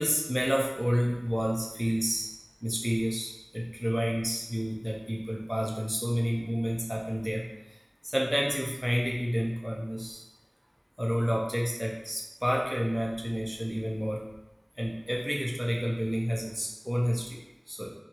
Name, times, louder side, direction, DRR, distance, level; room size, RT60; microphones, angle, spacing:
voice 1, 0.0-2.3 2.6-7.5 8.0-10.2 11.0-14.2 14.8-17.4 17.7-17.9, equal, 5° right, -2 dB, 0.6 m, -29 dB
4.4 x 2.6 x 2.8 m, 0.94 s
wide cardioid pair, 40°, 0 cm